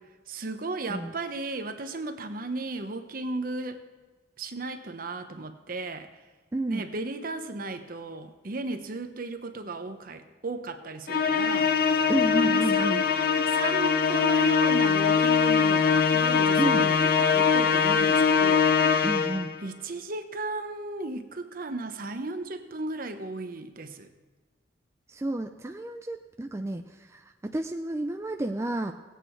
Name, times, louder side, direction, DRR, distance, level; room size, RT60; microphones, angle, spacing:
voice 1, 0.3-3.9 4.4-6.1 6.7-13.0 13.4-19.0 19.6-24.1, right 2 dB, 50° right, 8 dB, 0.9 m, -35 dB
voice 2, 6.5-6.9 12.1-13.0 16.6-16.9 19.0-19.6 25.1-28.9, right 1 dB, 15° right, 5 dB, 0.4 m, -31 dB
Musical instrument, 11.1-19.6, left 6 dB, 55° left, 0.6 m, -22 dB
17.0 x 8.3 x 4.5 m, 1.3 s
head